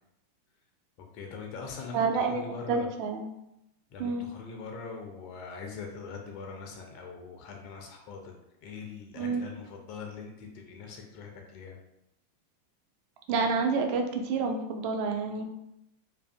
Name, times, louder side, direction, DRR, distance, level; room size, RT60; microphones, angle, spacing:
voice 1, 1.1-2.9 3.9-8.3 8.6-11.8, left 5 dB, 45° left, 1 dB, 0.4 m, -42 dB
voice 2, 1.9-3.3 4.0-4.2 9.1-9.4 13.3-15.4, right 4 dB, 45° right, 4 dB, 0.4 m, -29 dB
2.5 x 2.3 x 2.2 m, 0.85 s
figure-of-eight pair, 90°, 0 cm